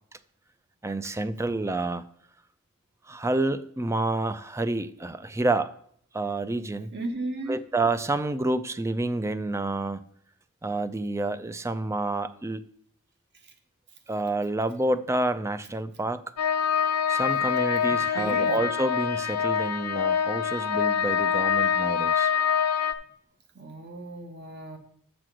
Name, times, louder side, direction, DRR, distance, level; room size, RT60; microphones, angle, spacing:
voice 1, 0.8-2.0 3.1-5.7 6.1-6.9 7.5-10.0 10.6-12.6 14.1-16.2 17.1-22.3, right 2 dB, 10° right, 13 dB, 0.4 m, -28 dB
voice 2, 6.9-7.6 13.4-13.5 17.8-18.6 23.5-24.8, right 2 dB, 50° right, 5 dB, 1.3 m, -35 dB
sound 1, 16.4-22.9, left 7 dB, 80° left, 0.6 m, -25 dB
6.7 x 6.1 x 6.2 m, 0.63 s
head